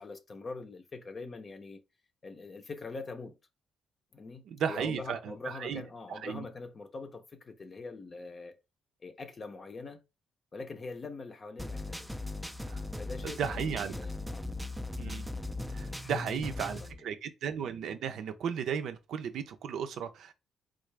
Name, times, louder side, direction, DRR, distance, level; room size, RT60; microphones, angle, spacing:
voice 1, 0.0-1.8 2.2-3.4 4.1-8.6 9.0-10.0 10.5-12.1 13.0-14.5 16.0-17.2, left 3 dB, 40° left, 0.6 m, -43 dB
voice 2, 4.5-5.8 6.1-6.4 12.7-12.8 13.2-13.9 15.0-15.2 15.7-20.3, right 7 dB, 75° right, 0.5 m, -35 dB
sound 1, 11.6-16.9, left 2 dB, ahead, 0.4 m, -38 dB
3.6 x 2.4 x 3.2 m
cardioid pair, 90°, 0 cm